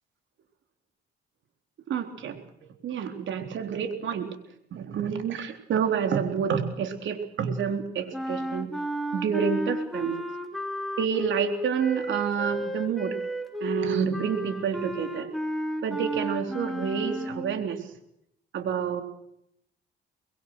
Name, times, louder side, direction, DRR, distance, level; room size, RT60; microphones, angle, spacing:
voice 1, 1.9-2.4 2.8-4.4 4.7-8.7 9.1-10.2 11.0-13.1 13.6-15.3 15.8-17.8 18.5-19.0, right 7 dB, 70° right, 6 dB, 3.9 m, -28 dB
sound 1, 8.1-17.7, equal, ahead, 3.4 m, -33 dB
25.0 x 22.0 x 6.3 m, 0.76 s
cardioid pair, 90°, 20 cm